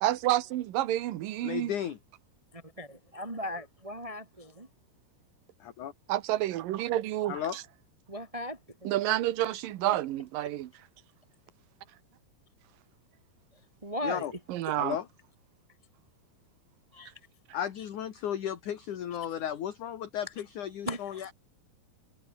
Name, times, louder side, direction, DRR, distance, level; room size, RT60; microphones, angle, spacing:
voice 1, 0.0-1.7 6.1-7.6 8.8-10.7 14.5-15.0, right 14 dB, 70° right, 2.6 m, -29 dB
voice 2, 1.4-2.0 5.6-5.9 7.3-7.6 14.0-14.3 14.8-15.1 17.5-21.3, left 10 dB, 55° left, 3.1 m, -34 dB
voice 3, 2.5-4.7 8.1-9.2 10.4-10.5 13.8-14.3 14.7-14.8 16.9-17.1 20.8-21.3, equal, 10° right, 3.0 m, -38 dB
omnidirectional pair, 4.5 m